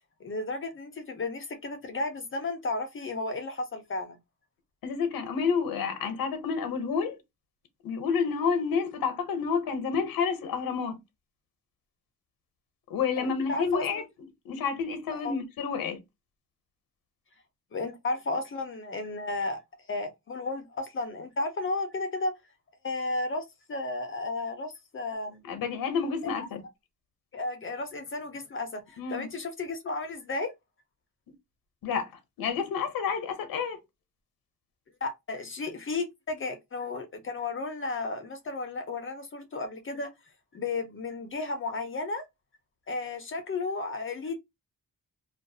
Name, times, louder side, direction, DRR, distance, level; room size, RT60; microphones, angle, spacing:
voice 1, 0.2-4.2 13.2-14.0 15.1-15.4 17.7-19.6 19.9-22.3 22.8-25.4 27.3-30.5 35.0-40.1 40.5-42.2 42.9-44.3, left 3 dB, 35° left, 0.5 m, -33 dB
voice 2, 4.8-7.2 7.8-11.0 12.9-14.0 14.4-16.0 25.5-26.6 29.0-29.3 31.8-32.1 32.4-33.8, left 6 dB, 80° left, 0.7 m, -29 dB
2.3 x 2.2 x 2.6 m
wide cardioid pair, 120°, 34 cm